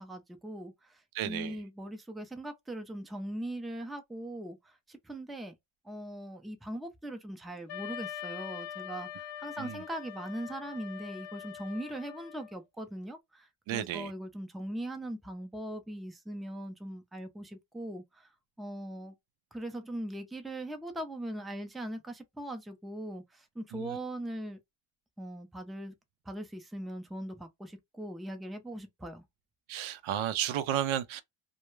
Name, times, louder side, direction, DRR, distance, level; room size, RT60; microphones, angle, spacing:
voice 1, 0.0-5.5 5.8-18.3 18.6-19.1 19.5-24.6 25.2-25.9 26.3-29.2, right 1 dB, ahead, 0.5 m, -40 dB
voice 2, 1.1-1.6 9.6-9.8 13.7-14.1 23.7-24.0 29.7-31.2, right 11 dB, 80° right, 0.6 m, -33 dB
Wind instrument woodwind instrument, 7.7-12.6, left 9 dB, 65° left, 0.7 m, -43 dB
2.3 x 2.1 x 3.1 m
cardioid pair, 80°, 48 cm